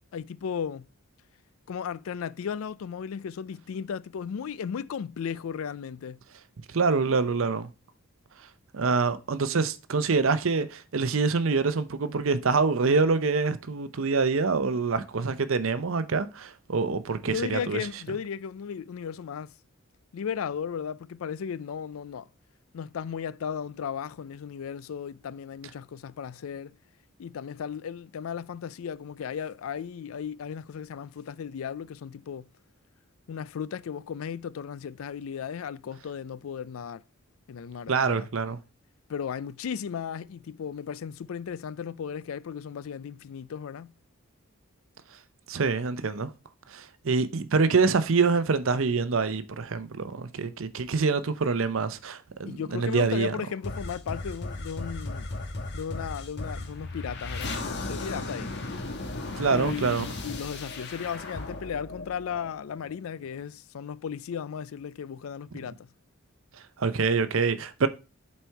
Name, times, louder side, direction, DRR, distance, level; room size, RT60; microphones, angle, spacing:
voice 1, 0.1-0.9 1.7-6.2 17.3-19.5 20.1-22.3 22.7-26.7 27.2-32.5 33.3-37.0 37.5-38.3 39.1-43.9 52.5-55.3 55.7-58.5 59.5-65.9, left 7 dB, 75° left, 0.4 m, -35 dB
voice 2, 6.7-7.7 8.7-17.8 37.9-38.6 45.5-46.3 46.7-53.3 59.4-60.1 66.8-67.9, right 4 dB, 65° right, 0.6 m, -25 dB
sound 1, 53.6-63.0, left 2 dB, 50° left, 1.1 m, -36 dB
8.0 x 4.3 x 4.5 m
head